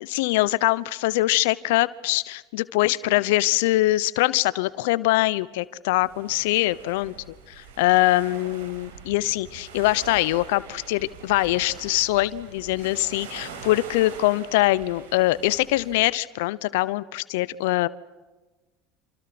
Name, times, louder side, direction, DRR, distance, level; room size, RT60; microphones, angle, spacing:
voice 1, 0.1-7.1 7.5-17.9, left 18 dB, 75° left, 19 dB, 0.9 m, -23 dB
sound 1, 6.0-16.0, right 6 dB, 80° right, 5.7 m, -43 dB
28.5 x 28.0 x 6.1 m, 1.2 s
hypercardioid pair, 80°, 0 cm